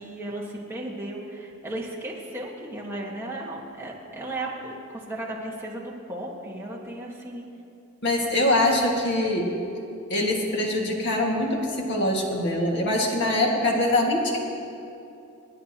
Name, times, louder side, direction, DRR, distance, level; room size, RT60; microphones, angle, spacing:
voice 1, 0.0-7.4, right 1 dB, 10° right, -4 dB, 1.5 m, -35 dB
voice 2, 8.0-9.5 10.1-14.4, left 1 dB, 50° left, -1 dB, 1.9 m, -23 dB
26.5 x 9.7 x 2.9 m, 2.7 s
head